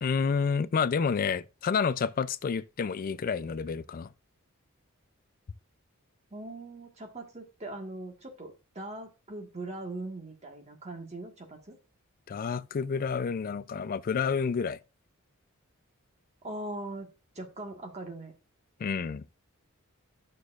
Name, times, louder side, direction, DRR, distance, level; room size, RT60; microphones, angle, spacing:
voice 1, 0.0-4.1 12.3-14.8 18.8-19.2, left 6 dB, 40° left, 0.3 m, -29 dB
voice 2, 6.3-11.8 16.4-18.3, right 2 dB, 30° right, 1.5 m, -41 dB
11.5 x 6.6 x 2.4 m
head